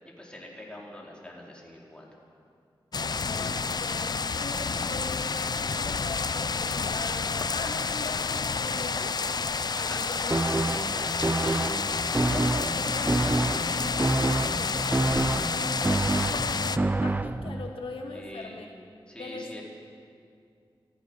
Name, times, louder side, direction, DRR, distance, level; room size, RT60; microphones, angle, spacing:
voice 1, 0.2-2.2 9.7-10.0 10.9-11.2 18.1-18.6 19.1-19.6, left 1 dB, 10° left, -3 dB, 4.6 m, -44 dB
sound 1, 2.9-16.8, left 4 dB, 50° left, 0.6 m, -29 dB
voice 2, 3.3-9.2 9.8-10.5 11.4-11.9 12.3-18.7 19.2-19.6, left 3 dB, 80° left, 1 dB, 2.1 m, -41 dB
sound 2, 10.3-17.7, right 2 dB, 20° right, 0.5 m, -28 dB
27.5 x 14.5 x 6.6 m, 2.3 s
wide cardioid pair, 95°, 9 cm